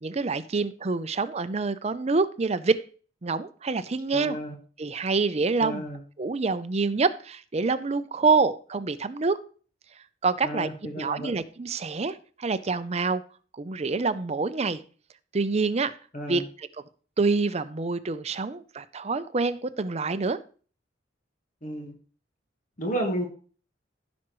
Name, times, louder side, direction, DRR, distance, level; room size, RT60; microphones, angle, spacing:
voice 1, 0.0-2.8 3.2-4.4 4.8-5.9 6.2-9.4 10.2-10.7 11.0-13.2 13.6-14.8 15.3-16.0 16.3-16.7 17.2-20.4, right 4 dB, 35° right, 13 dB, 0.5 m, -26 dB
voice 2, 4.1-4.6 5.6-6.0 10.4-11.3 16.1-16.4 21.6-21.9 22.8-23.3, right 1 dB, 45° left, 2 dB, 1.4 m, -32 dB
15.0 x 6.1 x 3.1 m, 0.40 s
head